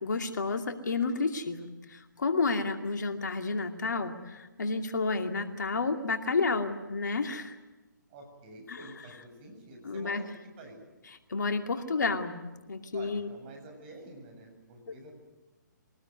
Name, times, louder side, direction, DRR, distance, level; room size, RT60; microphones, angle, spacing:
voice 1, 0.0-7.6 8.7-8.9 9.8-10.2 11.3-13.3, left 4 dB, 65° left, 5 dB, 2.5 m, -31 dB
voice 2, 8.1-10.2 10.6-10.8 12.9-15.1, right 2 dB, 30° right, 3 dB, 7.8 m, -48 dB
24.5 x 19.5 x 9.4 m, 1.1 s
figure-of-eight pair, 140°, 10 cm